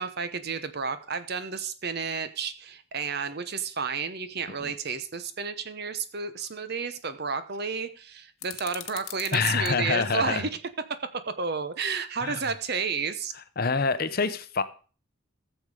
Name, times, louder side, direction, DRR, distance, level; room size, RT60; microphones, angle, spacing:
voice 1, 0.0-10.5 11.4-13.3, right 5 dB, 50° right, 0.9 m, -31 dB
sound 1, 8.4-9.7, left 13 dB, 80° left, 1.1 m, -41 dB
voice 2, 9.3-10.5 12.2-12.5 13.6-14.6, left 5 dB, 45° left, 0.7 m, -26 dB
14.5 x 7.2 x 4.9 m
head